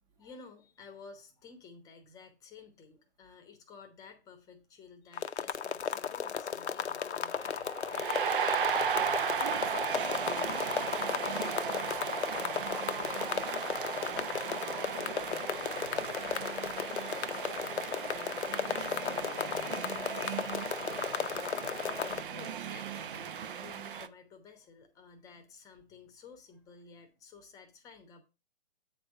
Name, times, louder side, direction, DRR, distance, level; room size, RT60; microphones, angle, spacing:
voice 1, 0.1-8.5 22.3-28.2, left 5 dB, 10° left, 1.0 m, -53 dB
sound 1, 5.1-22.2, left 7 dB, 85° left, 0.8 m, -35 dB
sound 2, 7.4-24.1, right 8 dB, 50° right, 0.8 m, -36 dB
voice 2, 9.6-12.0 12.4-13.3 14.1-15.3 15.6-16.6 17.4-17.9 18.2-19.5 20.1-21.0, right 6 dB, 15° right, 0.9 m, -55 dB
8.7 x 3.5 x 6.4 m
hypercardioid pair, 150°, 33 cm